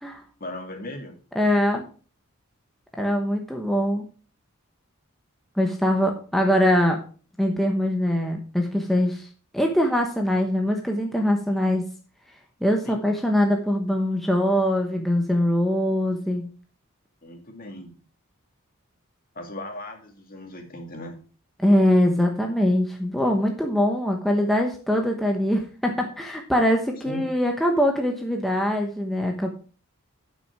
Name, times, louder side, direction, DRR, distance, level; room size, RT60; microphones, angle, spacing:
voice 1, 0.4-1.2 12.8-13.0 17.2-17.9 19.3-21.2 27.0-27.2, left 1 dB, 40° left, 3 dB, 2.4 m, -37 dB
voice 2, 1.3-1.9 3.0-4.0 5.6-7.0 7.4-9.3 9.5-11.9 12.6-16.4 21.6-29.5, equal, ahead, 1 dB, 1.0 m, -22 dB
11.5 x 6.2 x 4.7 m, 0.39 s
head